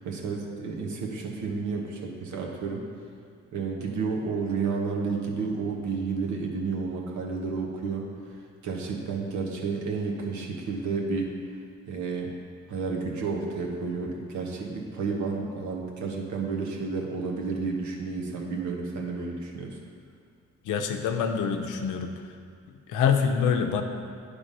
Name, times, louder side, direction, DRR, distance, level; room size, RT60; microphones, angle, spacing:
voice 1, 0.0-2.9 3.5-11.3 11.9-12.3 12.7-19.8, right 4 dB, 70° right, 0 dB, 1.3 m, -31 dB
voice 2, 20.7-22.1 22.9-23.8, left 7 dB, 80° left, 6 dB, 0.7 m, -25 dB
9.9 x 3.5 x 5.3 m, 2.3 s
cardioid pair, 90°, 30 cm